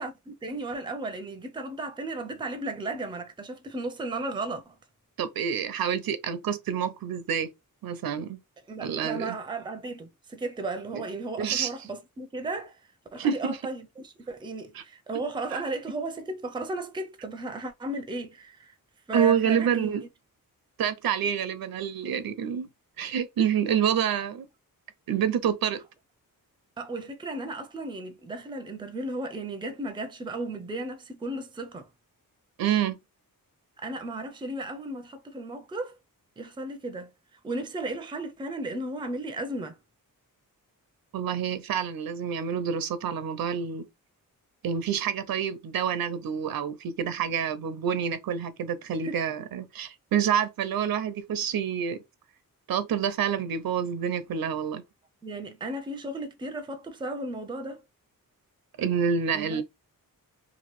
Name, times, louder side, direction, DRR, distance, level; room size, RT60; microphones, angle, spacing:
voice 1, 0.0-4.7 8.7-12.8 13.1-18.7 19.1-19.9 26.8-31.9 33.8-36.0 36.4-39.8 49.0-49.2 55.2-57.8 59.3-59.6, right 2 dB, 15° right, 0.4 m, -35 dB
voice 2, 5.2-7.5 7.8-8.4 8.8-9.4 11.4-11.7 13.2-13.6 14.7-14.8 15.5-15.6 19.1-20.0 20.8-22.7 23.0-24.5 25.1-25.8 32.6-33.0 41.1-43.8 44.6-52.0 52.7-54.8 58.8-59.6, right 8 dB, 80° right, 0.6 m, -27 dB
2.9 x 2.4 x 3.0 m
wide cardioid pair, 140°, 35 cm